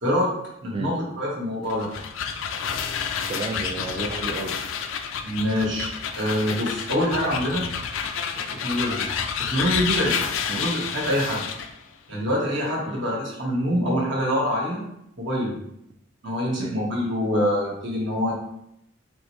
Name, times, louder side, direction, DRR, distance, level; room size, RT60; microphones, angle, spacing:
voice 1, 0.0-0.3 0.6-1.9 5.2-5.9 6.2-7.7 8.6-9.1 9.5-10.1 10.5-11.4 12.1-14.9 15.2-15.6 16.2-18.3, equal, 65° right, -3 dB, 1.4 m, -25 dB
sound 1, 1.6-11.7, left 7 dB, 75° left, 0.4 m, -29 dB
voice 2, 3.3-4.6 10.5-10.6 12.9-13.0 16.6-16.8, right 3 dB, 25° right, 3 dB, 0.3 m, -32 dB
4.4 x 3.0 x 3.2 m, 0.78 s
head